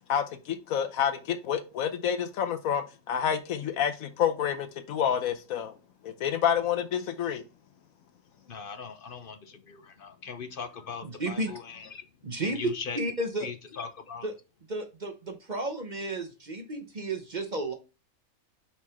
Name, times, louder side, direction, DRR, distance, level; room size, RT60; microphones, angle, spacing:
voice 1, 0.1-5.7 6.0-7.4, left 8 dB, 90° left, 1.3 m, -28 dB
voice 2, 8.5-12.1 12.4-13.0 13.4-14.3, left 6 dB, 50° left, 0.8 m, -39 dB
voice 3, 11.0-11.5 12.2-12.6 13.0-13.5 14.2-14.3 14.7-17.7, right 2 dB, 40° right, 0.9 m, -33 dB
5.7 x 4.6 x 3.5 m
omnidirectional pair, 1.4 m